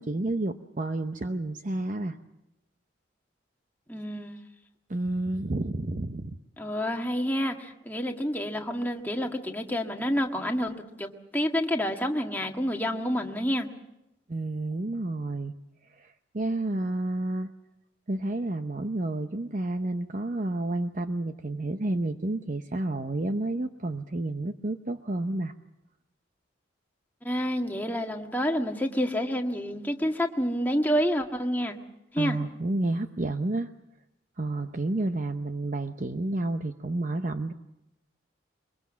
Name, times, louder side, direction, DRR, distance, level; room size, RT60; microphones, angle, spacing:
voice 1, 0.0-2.2 4.9-6.4 14.3-15.5 15.8-17.5 18.1-25.5 32.2-33.7 34.4-37.5, right 2 dB, 40° right, 7 dB, 0.8 m, -30 dB
voice 2, 3.9-4.3 6.6-13.7 27.2-31.8 32.1-32.4, equal, 10° left, 2 dB, 1.6 m, -28 dB
23.0 x 22.5 x 7.4 m, 0.89 s
head